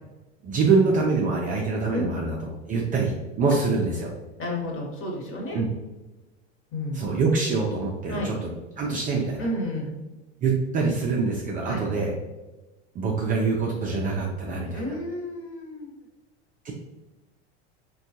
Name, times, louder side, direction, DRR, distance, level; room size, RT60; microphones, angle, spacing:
voice 1, 0.4-2.4 2.7-4.1 5.5-5.7 6.9-8.5 8.8-9.5 10.4-12.1 13.0-14.8 16.6-16.7, right 4 dB, 25° right, -2 dB, 0.3 m, -25 dB
voice 2, 4.4-5.6 6.7-7.1 8.1-8.3 9.4-10.0 11.6-11.8 14.7-15.9, left 1 dB, 40° left, -1 dB, 1.1 m, -31 dB
3.3 x 2.3 x 2.7 m, 1.1 s
hypercardioid pair, 105°, 34 cm